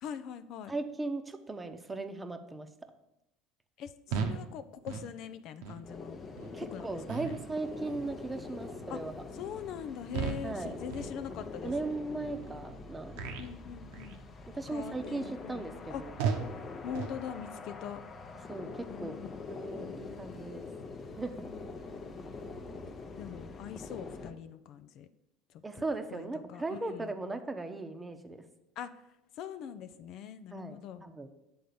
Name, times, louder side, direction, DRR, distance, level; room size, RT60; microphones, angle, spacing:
voice 1, 0.0-0.7 3.8-6.2 6.6-7.3 8.9-9.0 9.3-11.7 13.4-14.2 14.7-16.0 16.8-18.0 18.9-19.3 23.2-25.1 26.1-27.1 28.8-28.9 29.4-31.0, left 8 dB, 55° left, 12 dB, 0.4 m, -42 dB
voice 2, 0.7-2.7 6.5-9.1 10.4-10.8 11.5-13.2 14.5-16.1 18.5-19.2 19.5-20.7 21.2-21.5 22.7-22.8 25.6-28.4 30.5-31.3, right 2 dB, 15° right, 7 dB, 0.9 m, -38 dB
sound 1, 4.1-4.4 4.8-5.1 5.6-5.8 6.4-6.5 7.1-7.5 7.8-8.1 8.6-8.9 9.3-9.6 10.1-10.6 10.9-11.2 11.6-11.8 12.4-12.6 13.1-13.5 13.9-14.2 14.7-14.9 15.4-15.6 16.2-16.5 16.9-17.2, right 6 dB, 75° right, 0.9 m, -36 dB
sound 2, 5.8-24.3, left 4 dB, 35° left, 0.9 m, -44 dB
7.8 x 3.9 x 6.8 m, 0.88 s
hypercardioid pair, 80°, 0 cm